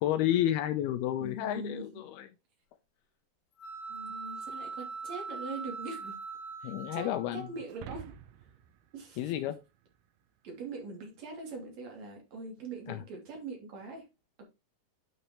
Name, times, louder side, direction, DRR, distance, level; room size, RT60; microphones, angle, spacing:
voice 1, 0.0-2.3 6.6-7.5 9.2-9.6 12.9-13.0, left 12 dB, 80° left, 2.4 m, -31 dB
voice 2, 1.2-1.9 3.9-6.2 6.6-8.0 8.9-9.3 10.4-14.1, right 3 dB, 45° right, 3.7 m, -42 dB
sound 1, 3.6-7.7, right 4 dB, 60° left, 2.8 m, -41 dB
sound 2, 7.7-10.2, right 8 dB, 80° right, 2.1 m, -49 dB
9.3 x 6.2 x 3.0 m
omnidirectional pair, 4.9 m